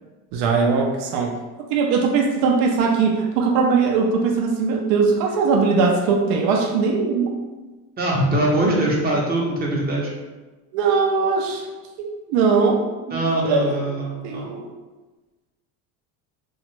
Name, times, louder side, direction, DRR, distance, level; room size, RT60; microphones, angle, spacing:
voice 1, 0.3-1.4 1.7-7.3 10.7-11.7 12.0-12.8 13.1-14.0 14.2-14.7, right 4 dB, 70° right, 1 dB, 0.5 m, -20 dB
voice 2, 8.0-10.1 13.1-14.5, right 1 dB, 25° right, -2 dB, 0.6 m, -22 dB
2.9 x 2.3 x 3.1 m, 1.2 s
cardioid pair, 130°, 41 cm